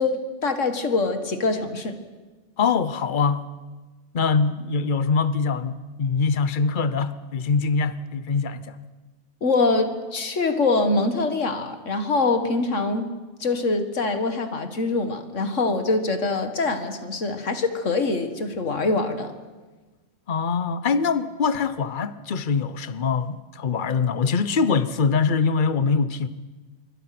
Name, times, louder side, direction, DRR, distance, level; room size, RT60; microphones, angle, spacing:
voice 1, 0.0-2.0 9.4-13.1 13.4-19.3, left 3 dB, 85° left, 2.2 m, -24 dB
voice 2, 2.6-3.4 4.1-8.8 20.3-26.3, left 5 dB, 45° left, 1.0 m, -23 dB
25.5 x 23.5 x 6.0 m
omnidirectional pair, 1.2 m